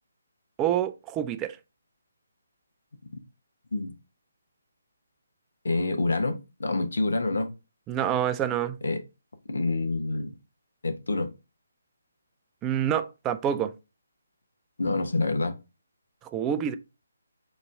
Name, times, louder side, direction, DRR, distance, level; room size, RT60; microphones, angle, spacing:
voice 1, 0.6-1.6 7.9-8.8 12.6-13.7 16.3-16.8, right 10 dB, 15° right, 0.3 m, -27 dB
voice 2, 5.6-7.5 8.8-9.0 9.5-10.3 10.8-11.3 14.8-15.6, left 2 dB, 65° left, 0.8 m, -27 dB
4.1 x 2.5 x 4.4 m
figure-of-eight pair, 145°, 0 cm